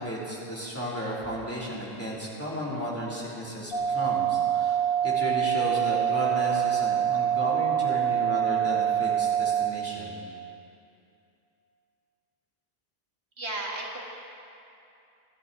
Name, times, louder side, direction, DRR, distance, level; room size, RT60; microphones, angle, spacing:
voice 1, 0.0-4.8 5.0-10.1, equal, 15° left, -7 dB, 3.4 m, -34 dB
sound 1, 3.7-9.7, right 9 dB, 60° left, 1.6 m, -25 dB
voice 2, 13.4-14.0, right 2 dB, 80° right, -2 dB, 2.3 m, -33 dB
26.5 x 11.5 x 4.1 m, 2.7 s
omnidirectional pair, 1.1 m